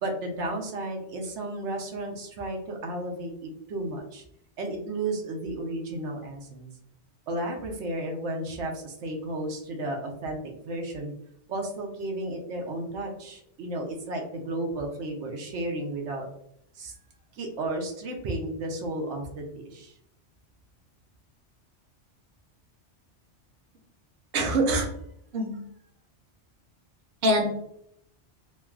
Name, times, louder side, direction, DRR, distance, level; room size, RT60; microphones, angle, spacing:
voice 1, 0.0-4.2 4.6-6.7 7.3-10.4 10.6-11.1 11.5-16.3 16.7-16.9 17.3-19.9, right 2 dB, 90° right, 2 dB, 1.0 m, -33 dB
voice 2, 24.3-24.9 25.3-25.6 27.2-27.5, right 1 dB, 60° right, 1 dB, 0.8 m, -23 dB
3.2 x 2.2 x 2.3 m, 0.72 s
omnidirectional pair, 1.2 m